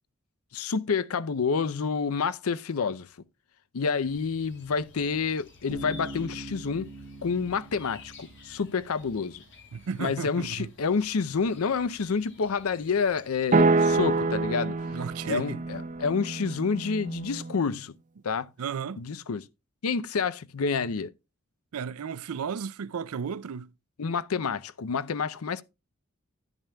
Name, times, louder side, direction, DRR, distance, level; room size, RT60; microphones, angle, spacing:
voice 1, 0.5-3.1 3.7-6.9 7.2-9.4 10.0-14.8 15.2-17.9 18.2-18.5 19.0-19.4 19.8-21.1 24.0-25.6, left 5 dB, 80° left, 0.6 m, -28 dB
sound 1, 4.0-13.4, left 3 dB, 60° left, 2.7 m, -53 dB
Bass guitar, 5.7-9.3, right 1 dB, 15° right, 4.6 m, -42 dB
voice 2, 9.7-10.7 14.9-15.6 18.6-19.0 21.7-23.7, right 6 dB, 85° right, 0.5 m, -34 dB
sound 2, 13.5-17.6, right 3 dB, 35° right, 0.7 m, -26 dB
11.0 x 9.9 x 2.2 m
head